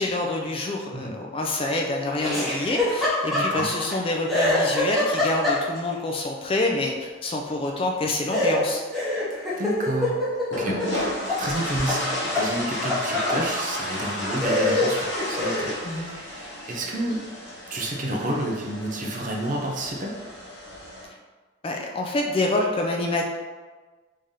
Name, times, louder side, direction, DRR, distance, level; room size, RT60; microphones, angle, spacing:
voice 1, 0.0-8.8 15.8-16.1 21.6-23.3, left 2 dB, 25° left, 1 dB, 0.3 m, -27 dB
Laughter, 2.2-4.0 4.3-5.9 8.3-11.4 11.7-13.4 14.0-14.1 14.4-15.8, left 1 dB, ahead, 0.8 m, -25 dB
voice 2, 3.3-3.7 9.6-10.2 10.5-17.2 17.7-20.2, right 1 dB, 40° right, -1 dB, 0.6 m, -30 dB
sound 1, 10.5-21.0, left 1 dB, 60° left, 0.8 m, -33 dB
3.3 x 2.7 x 3.6 m, 1.4 s
head